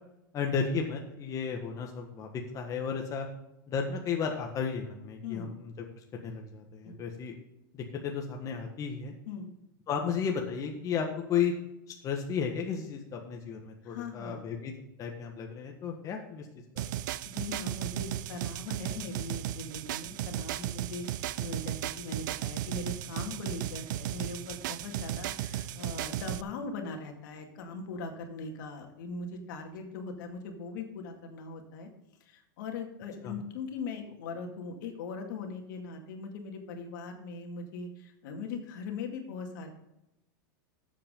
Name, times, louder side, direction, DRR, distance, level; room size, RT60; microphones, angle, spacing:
voice 1, 0.3-3.3 3.7-5.7 6.1-7.4 7.7-9.1 9.9-11.5 12.0-14.7 15.0-16.5 16.7-16.8 33.2-33.3, left 6 dB, 30° left, 2 dB, 1.5 m, -33 dB
voice 2, 13.8-14.4 17.3-31.9 32.2-39.7, left 4 dB, 70° left, 4 dB, 2.2 m, -40 dB
sound 1, 16.8-26.4, right 12 dB, 70° right, 0.5 m, -35 dB
12.5 x 7.6 x 3.8 m, 0.89 s
supercardioid pair, 125°, 11 cm